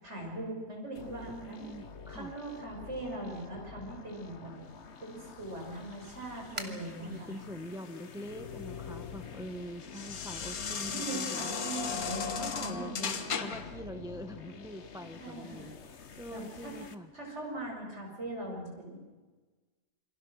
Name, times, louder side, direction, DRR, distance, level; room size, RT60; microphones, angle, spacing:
voice 1, 0.0-1.7 2.1-4.5 5.0-7.3 10.9-13.6 15.2-15.7 16.3-16.8 17.1-19.0, right 1 dB, 50° right, 0 dB, 6.5 m, -41 dB
sound 1, 0.9-16.9, left 5 dB, 55° left, 1.4 m, -49 dB
voice 2, 1.3-2.3 6.6-11.5 12.4-17.1, equal, 5° right, 7 dB, 0.8 m, -44 dB
sound 2, 4.6-9.8, right 1 dB, 20° right, 2.2 m, -51 dB
sound 3, 7.9-13.8, left 6 dB, 85° left, 1.9 m, -37 dB
28.0 x 24.5 x 6.4 m, 1.3 s
omnidirectional pair, 1.5 m